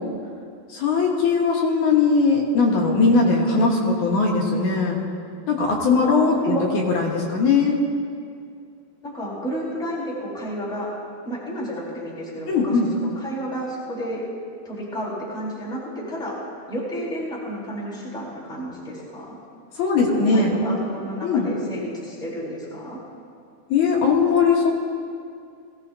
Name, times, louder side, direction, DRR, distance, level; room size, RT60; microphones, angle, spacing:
voice 1, 0.7-5.0 5.5-6.5 6.9-7.8 12.5-12.9 19.8-20.5 21.2-21.5 23.7-24.7, left 4 dB, 60° left, -2 dB, 2.4 m, -19 dB
voice 2, 6.0-6.7 9.0-10.9 11.2-14.2 14.6-16.4 16.7-19.4 19.9-23.0, equal, ahead, -8 dB, 3.7 m, -31 dB
21.0 x 16.5 x 2.7 m, 2.4 s
omnidirectional pair, 4.4 m